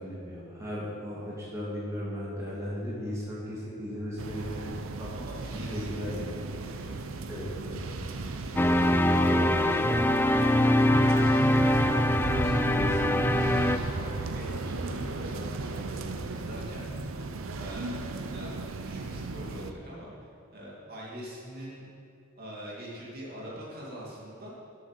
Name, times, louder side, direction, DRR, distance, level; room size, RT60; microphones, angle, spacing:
voice 1, 0.0-5.1 5.5-6.4 7.3-7.8 8.2-8.3 8.9-9.9 11.5-13.6, equal, 15° right, -8 dB, 2.0 m, -37 dB
sound 1, 4.2-19.7, right 2 dB, 75° right, 0.6 m, -35 dB
voice 2, 5.1-7.0 8.6-10.5 12.8-16.9 17.5-18.5 18.8-20.1 20.5-21.9 22.4-24.5, equal, 50° right, -5 dB, 2.5 m, -43 dB
sound 2, 8.6-13.8, left 1 dB, 10° left, 0.3 m, -23 dB
8.4 x 7.5 x 6.6 m, 2.5 s
head